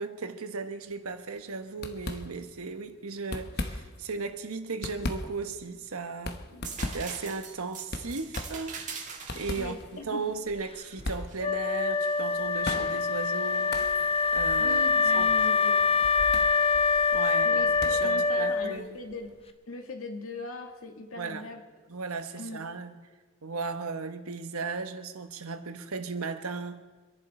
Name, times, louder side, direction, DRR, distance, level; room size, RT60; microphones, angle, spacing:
voice 1, 0.0-6.6 6.9-8.8 9.3-9.7 10.1-13.8 14.3-14.8 15.1-15.3 17.1-18.9 21.2-21.5 21.9-22.9 23.4-26.8, right 4 dB, 90° right, 1.3 m, -36 dB
sound 1, 0.8-1.1 1.4-1.5 1.8-2.7 3.1-4.1 4.5-19.5, left 2 dB, 50° left, 1.1 m, -40 dB
sound 2, 6.6-12.2 12.8-13.7 15.8-16.0, right 5 dB, 35° right, 1.9 m, -43 dB
voice 2, 9.6-10.3 14.6-15.9 17.4-19.3 19.7-21.6 22.4-22.6, left 2 dB, 80° left, 2.2 m, -40 dB
Wind instrument woodwind instrument, 11.4-19.0, left 5 dB, 25° left, 0.9 m, -25 dB
26.0 x 11.0 x 4.4 m
head